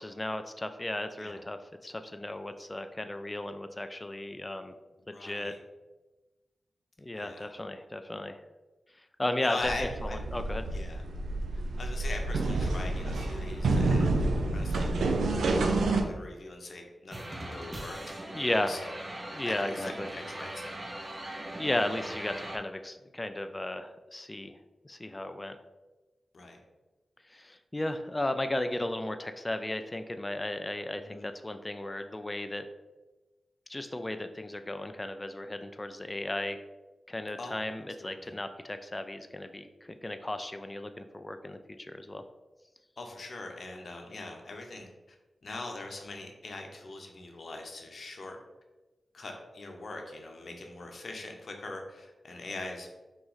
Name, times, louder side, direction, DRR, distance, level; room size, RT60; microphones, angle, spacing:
voice 1, 0.0-4.7 5.2-5.5 7.0-8.4 9.2-10.6 18.3-18.7 19.3-20.1 21.6-24.6 24.8-25.6 27.3-32.6 33.7-36.6 37.1-42.2, left 1 dB, 25° left, 8 dB, 0.3 m, -35 dB
voice 2, 5.1-5.6 7.1-7.6 9.4-10.2 10.7-11.0 11.5-14.1 14.5-14.9 15.9-18.9 19.4-20.8 26.3-26.6 31.0-31.2 37.4-37.6 38.0-38.3 43.0-45.2 45.4-48.4 49.1-52.9, left 2 dB, 65° left, 2 dB, 0.7 m, -42 dB
sound 1, 9.6-16.0, right 2 dB, 85° right, 0.4 m, -28 dB
sound 2, 17.1-22.6, right 1 dB, 35° right, 0.8 m, -40 dB
3.9 x 2.9 x 3.9 m, 1.1 s
cardioid pair, 40°, 0 cm